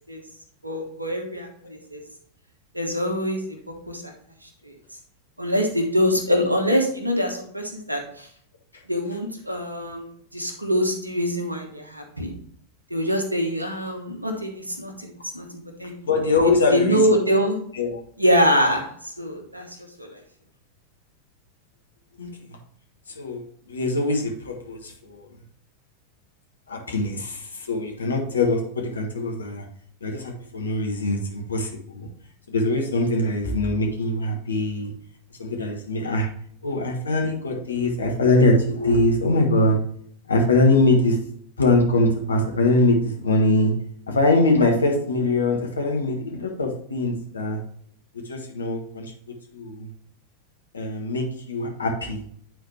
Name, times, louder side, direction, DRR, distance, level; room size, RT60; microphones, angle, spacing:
voice 1, 0.6-2.0 2.7-4.1 4.4-4.7 5.4-8.3 8.9-12.3 12.9-16.0 16.4-17.6 18.2-20.2, equal, 85° right, 3 dB, 1.2 m, -24 dB
voice 2, 16.0-17.0 17.8-18.0 22.2-22.6 23.2-23.4 23.7-25.3 26.7-29.6 30.0-32.1 32.5-34.9 35.4-36.3 36.6-39.8 40.3-41.2 41.6-43.7 44.1-47.6 48.2-49.1 49.5-49.9 50.7-52.2, left 2 dB, 75° left, 1 dB, 1.4 m, -22 dB
9.2 x 4.1 x 3.3 m, 0.63 s
figure-of-eight pair, 90°, 0 cm